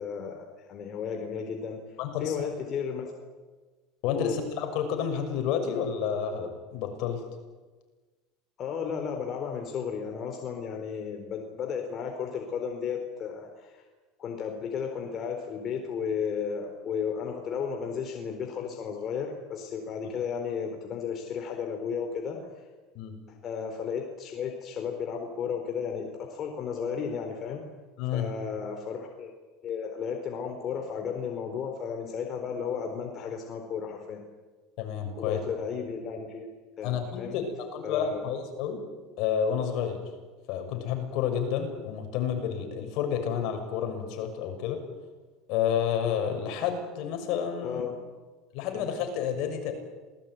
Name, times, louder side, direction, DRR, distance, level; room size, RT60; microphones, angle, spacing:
voice 1, 0.0-1.8 2.2-3.1 4.1-4.3 8.6-13.8 14.2-22.4 23.4-27.6 28.1-29.3 29.6-34.2 35.1-37.4 37.8-38.3 47.6-47.9 48.7-48.9, left 6 dB, 40° left, 3 dB, 4.0 m, -34 dB
voice 2, 2.0-2.5 4.0-7.2 22.9-23.1 28.0-28.3 34.8-35.4 36.8-38.8 39.2-40.0 40.5-44.8 45.5-47.8 48.5-49.7, left 8 dB, 60° left, 5 dB, 6.3 m, -30 dB
27.5 x 19.0 x 9.5 m, 1.3 s
supercardioid pair, 130°, 0 cm